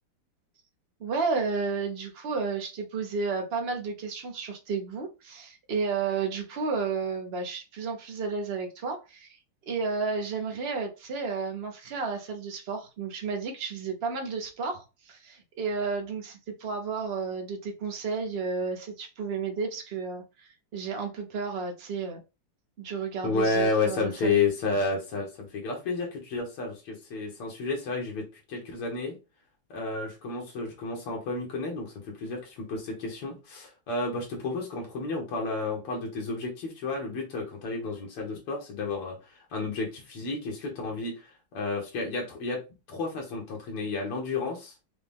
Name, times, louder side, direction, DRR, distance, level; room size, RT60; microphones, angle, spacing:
voice 1, 1.0-9.4 9.7-22.2 22.8-24.4, right 4 dB, 55° right, 0.6 m, -32 dB
voice 2, 23.2-29.1 29.7-42.6 42.9-44.7, left 3 dB, 85° left, 2.3 m, -31 dB
5.8 x 2.3 x 3.5 m
omnidirectional pair, 2.4 m